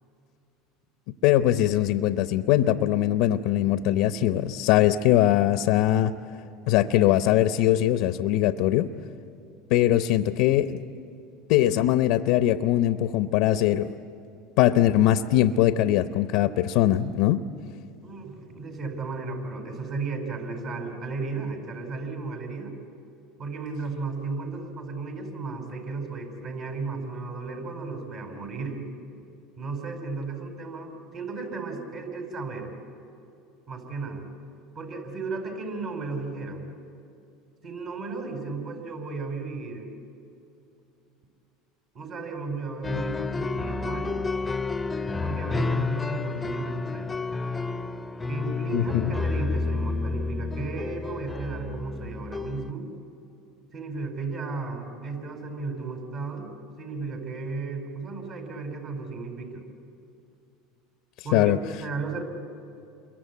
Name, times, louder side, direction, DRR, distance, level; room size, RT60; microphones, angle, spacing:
voice 1, 1.2-6.1 6.7-8.9 9.7-10.8 11.5-13.9 14.6-17.4 48.7-49.1 61.3-61.6, left 13 dB, 70° left, 11 dB, 0.7 m, -21 dB
voice 2, 18.0-22.7 23.4-28.8 29.6-32.7 33.7-34.3 34.7-36.6 37.6-39.9 41.9-44.1 45.2-47.1 48.3-52.9 53.7-59.6 61.2-62.2, right 3 dB, 55° right, 3 dB, 5.0 m, -34 dB
sound 1, 42.8-52.7, left 4 dB, 15° left, 0.8 m, -30 dB
28.5 x 23.0 x 8.4 m, 2.7 s
supercardioid pair, 95°, 0 cm